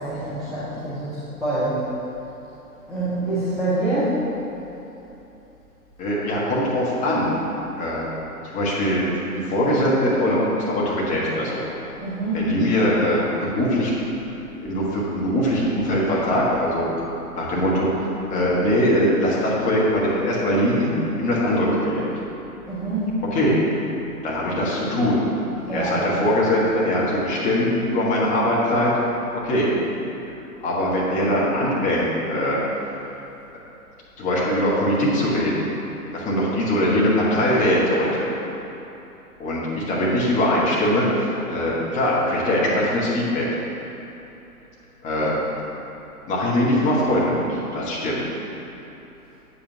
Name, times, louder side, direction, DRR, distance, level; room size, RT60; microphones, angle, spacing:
voice 1, 0.0-1.9 2.9-4.2 12.0-12.6 22.7-23.1 25.7-25.9, right 2 dB, ahead, -15 dB, 0.6 m, -26 dB
voice 2, 6.0-7.3 7.8-8.0 8.4-11.7 12.3-13.9 14.6-16.9 17.3-20.9 21.2-22.0 23.3-23.6 24.2-25.2 25.7-28.9 29.3-29.7 30.6-32.6 34.2-35.7 36.1-38.3 39.4-43.5 45.0-45.3 46.3-48.2, equal, 15° left, -6 dB, 1.3 m, -21 dB
8.5 x 7.7 x 2.8 m, 3.0 s
figure-of-eight pair, 120°, 46 cm